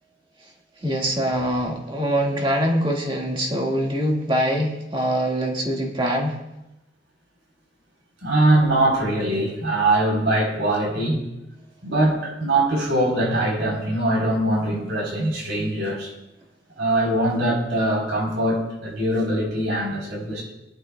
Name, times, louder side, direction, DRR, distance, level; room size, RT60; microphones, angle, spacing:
voice 1, 0.8-6.4, equal, 25° right, 0 dB, 1.8 m, -23 dB
voice 2, 8.2-11.2 11.8-16.1 16.8-20.5, right 1 dB, 75° right, -1 dB, 3.8 m, -22 dB
21.0 x 11.5 x 2.3 m, 0.92 s
head